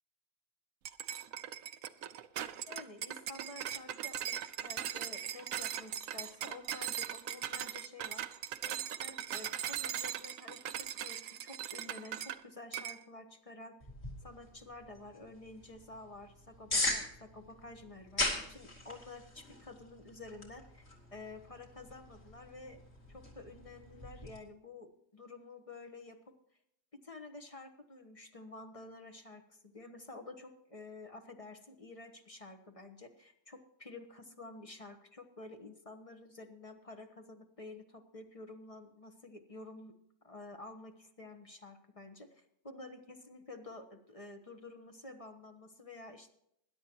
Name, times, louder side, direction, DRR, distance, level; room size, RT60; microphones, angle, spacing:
sound 1, 0.8-12.4 12.7-13.0, right 10 dB, 70° right, 1.0 m, -39 dB
voice 1, 2.7-4.4 4.6-8.4 8.7-13.7 14.2-22.8 23.1-26.2 27.0-39.9 40.2-46.3, left 2 dB, 25° left, 6 dB, 1.0 m, -50 dB
sound 2, 13.8-24.4, left 2 dB, 45° left, 2.9 m, -41 dB
20.5 x 11.0 x 2.9 m, 0.77 s
omnidirectional pair, 1.6 m